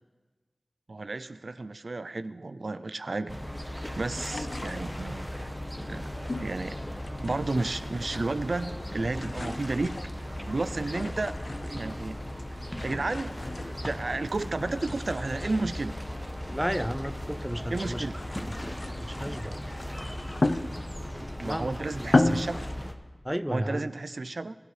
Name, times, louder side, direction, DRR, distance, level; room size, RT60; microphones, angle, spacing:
voice 1, 0.9-3.4 4.0-5.5 5.9-6.1 6.4-6.8 7.2-11.3 11.6-12.2 12.8-13.5 13.8-15.9 17.7-18.2 21.2-22.6 23.5-24.6, right 3 dB, 70° right, 13 dB, 0.4 m, -32 dB
sound 1, 3.3-22.9, equal, 15° left, 1.0 m, -37 dB
sound 2, 4.0-5.3 6.2-7.7 8.0-8.6 8.9-12.0 12.6-14.2 14.6-17.2 17.6-21.2 21.6-21.7 22.0-22.8, left 2 dB, 65° left, 0.5 m, -34 dB
voice 2, 16.5-18.1 19.0-19.6 21.4-22.4 23.2-23.9, equal, 5° right, 13 dB, 0.5 m, -33 dB
20.0 x 8.0 x 3.2 m, 1.3 s
wide cardioid pair, 40°, 0 cm